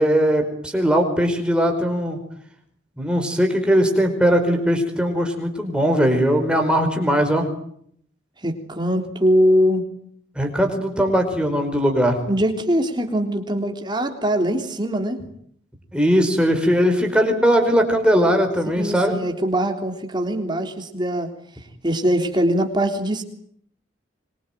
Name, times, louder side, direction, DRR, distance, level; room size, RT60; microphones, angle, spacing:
voice 1, 0.0-2.2 3.0-7.5 10.4-12.2 15.9-19.2, equal, 5° right, 3 dB, 5.1 m, -19 dB
voice 2, 8.4-9.9 12.3-15.2 18.8-21.3 21.8-23.2, equal, 25° right, 4 dB, 3.5 m, -22 dB
25.0 x 23.5 x 9.3 m, 0.68 s
head